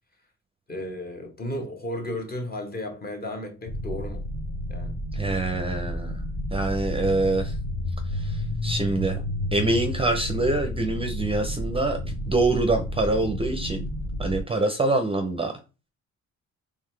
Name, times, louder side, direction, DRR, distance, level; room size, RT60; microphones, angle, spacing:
voice 1, 0.7-4.2 4.7-5.0, left 1 dB, 30° left, 1.1 m, -34 dB
sound 1, 3.7-14.4, left 1 dB, 80° left, 1.3 m, -31 dB
voice 2, 5.1-6.2 6.5-7.6 8.1-9.2 9.5-13.9 14.2-15.5, right 2 dB, 20° right, 0.5 m, -25 dB
3.8 x 3.3 x 3.2 m
cardioid pair, 115°, 30 cm